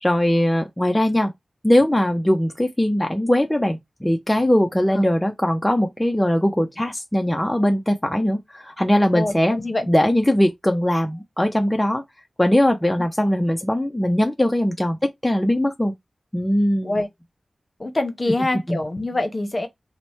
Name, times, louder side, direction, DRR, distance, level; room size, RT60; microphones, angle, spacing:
voice 1, 0.0-1.3 1.6-9.6 9.9-12.0 12.4-15.0 15.2-15.9 16.3-17.0 18.7-18.8, left 1 dB, 10° left, 0.5 m, -20 dB
voice 2, 9.1-9.9 16.8-17.1 17.8-19.7, left 2 dB, 40° left, 0.9 m, -25 dB
2.9 x 2.1 x 4.1 m
cardioid pair, 50°, 0 cm